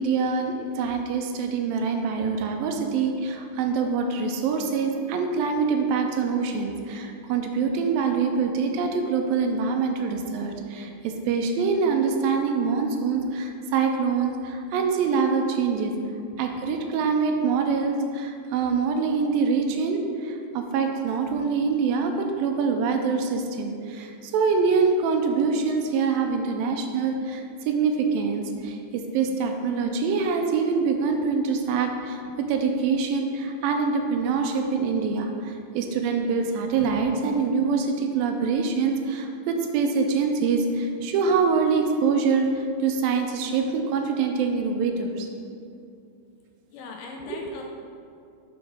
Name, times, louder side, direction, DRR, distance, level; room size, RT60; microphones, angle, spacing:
voice 1, 0.0-15.9 16.4-45.3 47.3-47.4, right 5 dB, 85° right, 4 dB, 2.3 m, -25 dB
voice 2, 46.7-47.6, left 4 dB, 80° left, 1 dB, 2.0 m, -39 dB
5.8 x 5.1 x 4.8 m, 2.5 s
omnidirectional pair, 4.1 m